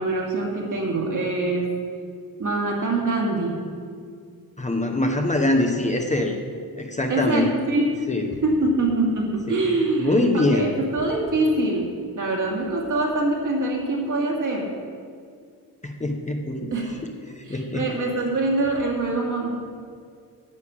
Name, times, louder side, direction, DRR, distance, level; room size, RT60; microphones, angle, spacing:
voice 1, 0.0-1.7 2.4-3.6 7.1-7.9 8.4-11.9 12.2-14.7 16.7-16.9 17.5-19.5, right 2 dB, 55° right, -1 dB, 2.4 m, -24 dB
voice 2, 4.6-6.3 6.8-7.6 8.1-8.3 9.5-9.6 9.9-10.7 15.8-17.0 17.3-17.9, left 2 dB, 20° left, 3 dB, 0.8 m, -23 dB
9.7 x 6.7 x 8.7 m, 2.2 s
wide cardioid pair, 145°, 37 cm